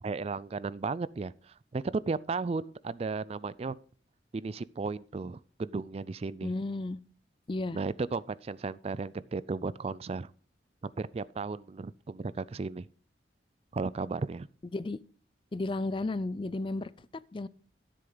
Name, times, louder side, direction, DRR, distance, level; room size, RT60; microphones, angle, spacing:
voice 1, 0.0-3.8 4.3-6.5 7.7-10.3 10.8-12.9 13.7-14.5, right 4 dB, 35° right, 0.4 m, -35 dB
voice 2, 6.4-7.0 7.5-7.8 14.7-15.0 15.5-17.5, left 2 dB, 30° left, 0.4 m, -33 dB
13.0 x 7.8 x 3.9 m
head